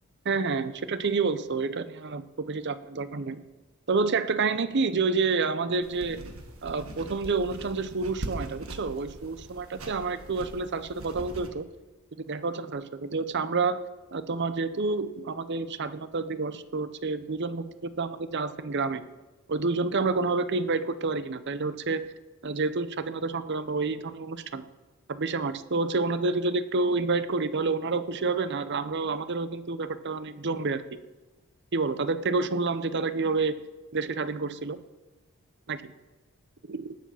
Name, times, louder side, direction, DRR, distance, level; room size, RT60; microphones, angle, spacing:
voice 1, 0.2-3.4 3.9-6.2 6.6-11.6 12.3-13.8 14.1-19.0 19.5-22.0 22.4-24.6 25.1-31.0 31.7-33.6 33.9-34.8 35.7-35.8 36.7-36.8, right 4 dB, 50° right, 13 dB, 0.7 m, -29 dB
sound 1, 5.8-11.5, right 1 dB, 65° right, 1.6 m, -41 dB
18.5 x 7.5 x 5.7 m, 1.2 s
head